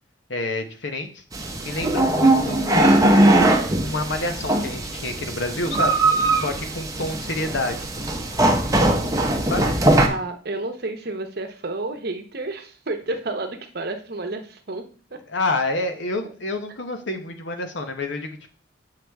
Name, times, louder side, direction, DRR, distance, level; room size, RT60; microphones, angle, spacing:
voice 1, 0.3-1.2 1.6-3.1 3.8-6.0 6.3-7.9 9.4-9.8 15.3-18.5, left 2 dB, 65° left, 6 dB, 0.9 m, -28 dB
sound 1, 1.3-10.1, right 1 dB, 15° right, 0.8 m, -20 dB
voice 2, 10.0-15.2, right 2 dB, 55° right, 6 dB, 0.9 m, -31 dB
7.7 x 4.9 x 3.4 m, 0.40 s
head